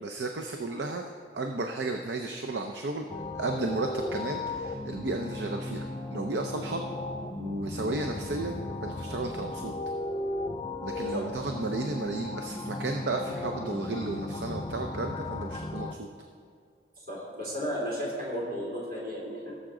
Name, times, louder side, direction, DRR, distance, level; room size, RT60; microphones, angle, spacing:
voice 1, 0.0-3.1 3.4-6.8 7.4-9.7 10.8-16.1, right 2 dB, 75° right, 4 dB, 0.6 m, -33 dB
sound 1, 3.1-15.9, left 2 dB, 25° left, 0.5 m, -36 dB
voice 2, 17.1-19.5, equal, 50° right, -5 dB, 3.2 m, -34 dB
17.0 x 7.3 x 3.8 m, 2.3 s
head